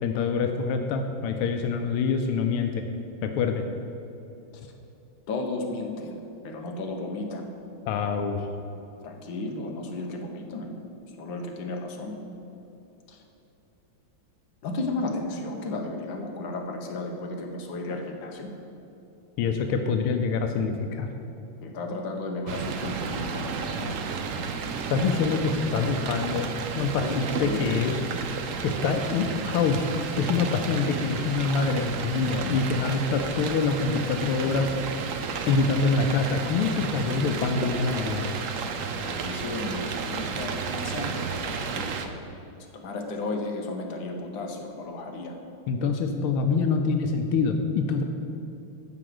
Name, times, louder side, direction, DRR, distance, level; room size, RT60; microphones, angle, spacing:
voice 1, 0.0-2.8 3.2-3.6 7.9-8.4 19.4-21.1 24.9-26.5 26.8-28.0 28.6-29.9 30.2-34.7 35.5-38.2 45.7-48.0, left 4 dB, 90° left, 5 dB, 1.6 m, -25 dB
voice 2, 5.3-7.5 9.0-10.7 11.2-12.2 13.1-13.2 14.6-18.6 21.6-24.0 26.8-28.0 38.8-42.2 42.7-45.3, left 2 dB, 65° left, 2 dB, 1.8 m, -34 dB
sound 1, 22.5-42.1, right 5 dB, 80° right, 0.7 m, -32 dB
11.5 x 5.0 x 7.8 m, 2.9 s
omnidirectional pair, 2.3 m